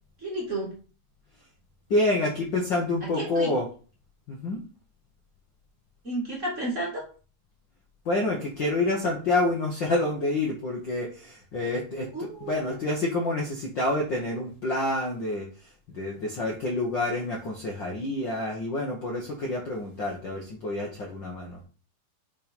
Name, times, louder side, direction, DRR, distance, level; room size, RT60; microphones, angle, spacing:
voice 1, 0.2-0.7 3.0-3.5 6.0-7.0 12.1-12.8, right 1 dB, 25° right, -3 dB, 2.1 m, -32 dB
voice 2, 1.9-3.7 4.3-4.6 8.0-21.6, left 2 dB, 50° left, -1 dB, 1.4 m, -28 dB
5.5 x 5.3 x 5.3 m, 0.38 s
omnidirectional pair, 3.5 m